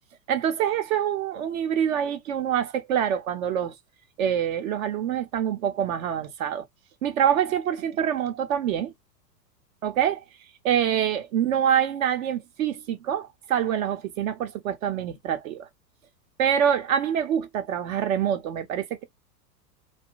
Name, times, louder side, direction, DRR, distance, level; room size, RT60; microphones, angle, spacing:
voice 1, 0.3-3.7 4.2-6.6 7.0-8.9 9.8-10.2 10.6-15.7 16.4-19.0, right 9 dB, 55° right, 0.7 m, -25 dB
2.5 x 2.2 x 3.7 m
hypercardioid pair, 105°, 48 cm